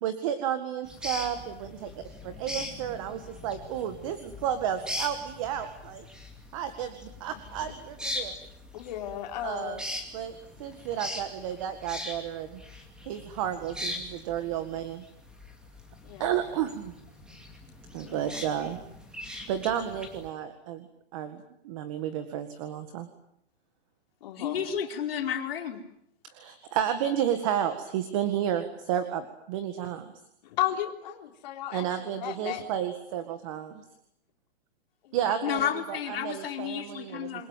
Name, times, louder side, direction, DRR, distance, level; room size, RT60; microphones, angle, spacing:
voice 1, 0.0-1.9 2.2-6.1 6.5-8.4 9.4-9.8 10.1-12.6 13.1-15.0 16.2-16.9 17.9-18.8 19.5-20.9 21.1-21.4 21.6-23.1 26.2-30.1 31.7-33.8 35.1-37.5, right 10 dB, 30° right, 9 dB, 1.9 m, -32 dB
sound 1, 0.8-20.3, left 1 dB, ahead, 2.5 m, -41 dB
voice 2, 8.7-9.8 16.0-16.3 18.0-18.4 24.2-24.6 30.4-32.6 35.0-35.4, left 12 dB, 40° left, 2 dB, 3.6 m, -34 dB
voice 3, 24.4-25.8 35.4-37.5, left 9 dB, 60° left, 3 dB, 4.8 m, -31 dB
28.0 x 22.5 x 9.3 m, 0.73 s
hypercardioid pair, 175°, 32 cm